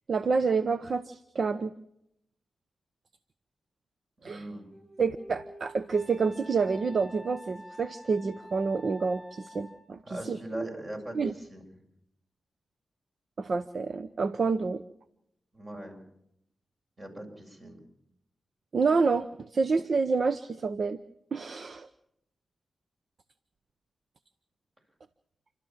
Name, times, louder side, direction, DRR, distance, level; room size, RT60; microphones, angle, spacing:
voice 1, 0.1-1.8 4.2-4.5 5.0-10.7 11.1-11.3 13.4-14.8 18.7-21.0 21.3-21.9, right 4 dB, 60° right, 13 dB, 0.8 m, -28 dB
voice 2, 4.2-4.7 10.0-11.7 15.5-16.0 17.0-17.8, right 1 dB, 40° right, 3 dB, 7.6 m, -40 dB
Wind instrument woodwind instrument, 4.5-10.0, left 1 dB, ahead, 6.5 m, -49 dB
29.0 x 13.0 x 7.4 m, 0.76 s
cardioid pair, 50°, 0 cm